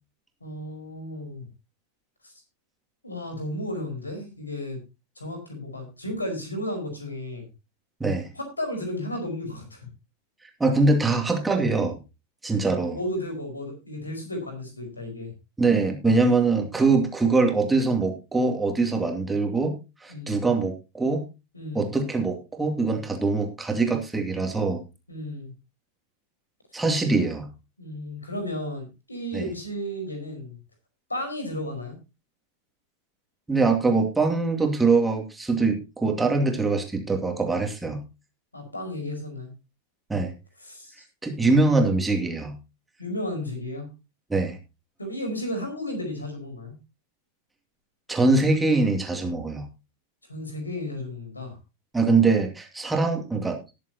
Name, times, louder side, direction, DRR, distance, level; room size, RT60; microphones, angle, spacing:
voice 1, 0.4-1.5 2.2-2.3 3.0-4.8 5.2-7.4 8.3-9.8 11.0-11.1 12.9-15.3 20.1-20.5 21.5-21.9 25.1-25.5 27.8-30.6 31.1-32.0 38.5-39.5 40.6-40.9 43.0-43.9 45.0-46.7 50.3-51.6, left 1 dB, 80° left, 4 dB, 5.0 m, -33 dB
voice 2, 10.6-12.0 12.4-13.0 15.6-19.8 20.0-21.2 21.7-24.8 26.7-27.5 29.3-29.5 33.5-38.0 40.1-40.3 41.2-42.5 44.3-44.6 48.1-49.7 51.9-53.6, right 3 dB, 10° right, 3 dB, 2.5 m, -23 dB
19.5 x 7.6 x 2.9 m, 0.27 s
figure-of-eight pair, 90°, 0 cm